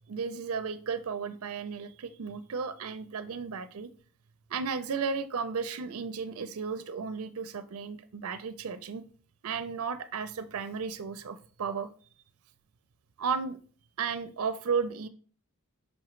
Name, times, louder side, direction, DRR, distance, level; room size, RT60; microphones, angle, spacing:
voice 1, 0.1-3.9 4.5-9.0 9.4-11.9 13.2-13.6 14.0-15.1, right 5 dB, 70° right, 10 dB, 0.4 m, -34 dB
5.7 x 5.3 x 3.1 m, 0.41 s
head